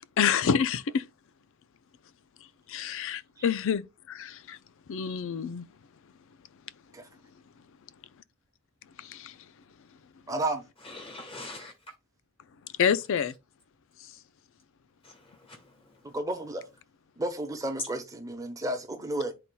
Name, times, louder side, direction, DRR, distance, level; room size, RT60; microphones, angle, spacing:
voice 1, 0.2-1.0 2.7-4.6 4.9-5.7 9.0-9.4 12.8-13.3, left 7 dB, 60° left, 0.4 m, -28 dB
voice 2, 10.3-10.6 16.0-16.6 17.2-19.3, right 1 dB, 15° right, 0.9 m, -32 dB
voice 3, 10.8-12.0 15.0-16.2, left 2 dB, 25° left, 1.7 m, -45 dB
10.5 x 4.1 x 2.2 m
head